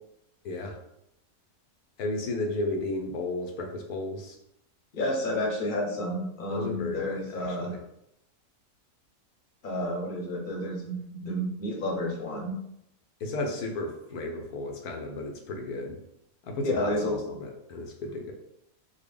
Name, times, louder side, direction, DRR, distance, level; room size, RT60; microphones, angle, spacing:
voice 1, 0.4-0.8 2.0-4.4 6.5-7.8 13.2-16.0 16.4-18.3, left 2 dB, 85° left, 2 dB, 1.2 m, -34 dB
voice 2, 4.9-7.7 9.6-12.6 16.6-17.1, left 1 dB, 45° left, -1 dB, 0.8 m, -30 dB
4.0 x 2.2 x 3.3 m, 0.77 s
omnidirectional pair, 1.6 m